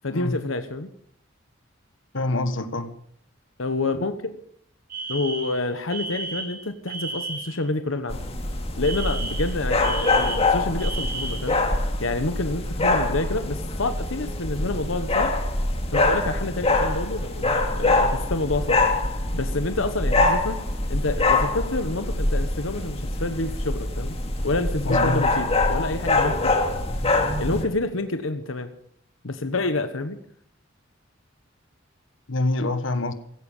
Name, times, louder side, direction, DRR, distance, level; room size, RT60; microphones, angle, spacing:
voice 1, 0.0-0.9 3.6-4.4 5.1-8.2 8.8-11.6 12.0-15.3 15.9-18.8 19.3-20.6 20.9-24.2 24.4-26.5 27.4-28.7 29.2-30.2, left 2 dB, 85° left, 1.3 m, -28 dB
voice 2, 2.1-2.9 24.8-25.2 32.3-33.1, left 2 dB, 70° left, 1.5 m, -25 dB
Alarm, 4.9-7.6 8.8-11.6, right 3 dB, 50° right, 3.2 m, -34 dB
sound 1, 8.1-27.6, left 2 dB, 30° left, 2.6 m, -24 dB
16.5 x 16.0 x 5.5 m
head